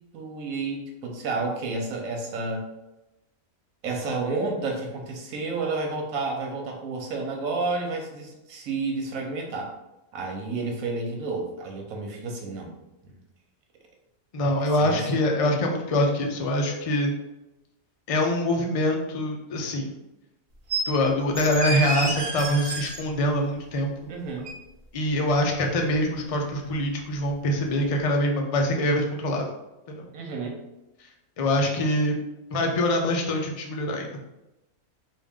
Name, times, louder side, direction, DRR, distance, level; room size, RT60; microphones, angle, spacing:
voice 1, 0.1-2.6 3.8-9.7 10.1-12.7 13.0-13.2 14.8-15.1 24.1-24.5 30.1-30.6, right 3 dB, 85° right, 1 dB, 1.2 m, -30 dB
voice 2, 14.3-17.1 18.1-20.0 20.9-24.1 24.9-29.5 29.9-30.1 31.4-32.1 32.5-34.1, left 1 dB, 50° left, 1 dB, 0.4 m, -24 dB
sound 1, 20.7-20.9 21.3-23.0 24.5-24.6, right 3 dB, 50° right, 0.7 m, -29 dB
3.6 x 2.5 x 3.6 m, 0.95 s
omnidirectional pair, 1.4 m